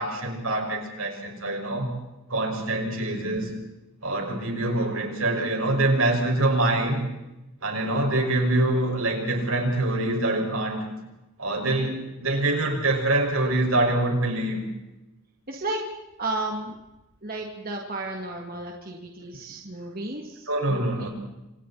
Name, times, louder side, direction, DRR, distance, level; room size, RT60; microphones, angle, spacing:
voice 1, 0.0-1.9 2.3-3.5 4.0-7.1 7.6-10.8 11.4-14.6 20.5-21.1, right 2 dB, 80° right, 2 dB, 5.9 m, -25 dB
voice 2, 15.5-15.8 16.2-16.8 17.2-21.1, right 2 dB, 45° right, 0 dB, 2.6 m, -33 dB
27.5 x 27.0 x 4.3 m, 0.97 s
head